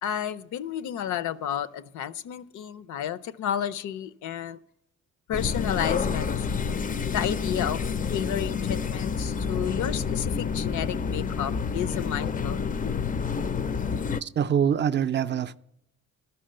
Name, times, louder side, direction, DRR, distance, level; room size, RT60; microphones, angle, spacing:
voice 1, 0.0-4.6 5.3-6.7 7.1-7.8 8.1-12.8, left 10 dB, 75° left, 0.6 m, -31 dB
sound 1, 5.3-14.2, left 5 dB, 30° left, 0.4 m, -29 dB
voice 2, 14.2-15.6, right 8 dB, 35° right, 0.4 m, -24 dB
12.5 x 5.7 x 7.5 m
cardioid pair, 90°, 30 cm